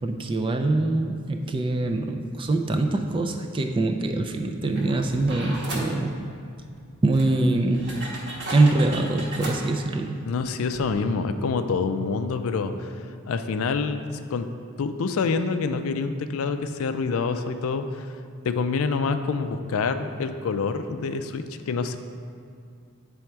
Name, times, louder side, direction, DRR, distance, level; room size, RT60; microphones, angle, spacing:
voice 1, 0.0-6.1 7.0-7.9 8.5-10.3, right 2 dB, 25° right, 4 dB, 0.3 m, -24 dB
sound 1, 4.7-5.9 6.7-6.8 7.1-9.6 10.4-10.5 10.7-10.9, right 2 dB, 55° right, 1.2 m, -35 dB
voice 2, 10.3-12.9 13.3-14.0 14.3-14.5 14.8-18.1 18.4-22.0, left 4 dB, 65° left, 8 dB, 0.4 m, -26 dB
8.6 x 3.4 x 4.5 m, 2.3 s
head